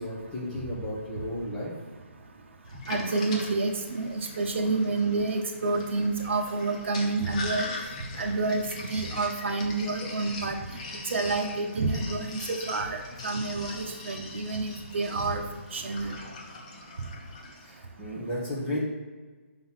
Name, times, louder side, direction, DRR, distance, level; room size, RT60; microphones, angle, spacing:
voice 1, 0.0-1.7 17.6-18.8, equal, 10° left, -7 dB, 1.2 m, -34 dB
Sink (filling or washing), 2.7-17.7, left 2 dB, 30° left, 0.8 m, -41 dB
voice 2, 2.9-7.7 8.2-10.6 11.1-15.4 15.7-16.1, right 3 dB, 55° right, 3 dB, 1.1 m, -29 dB
5.7 x 3.9 x 5.8 m, 1.4 s
hypercardioid pair, 170°, 7 cm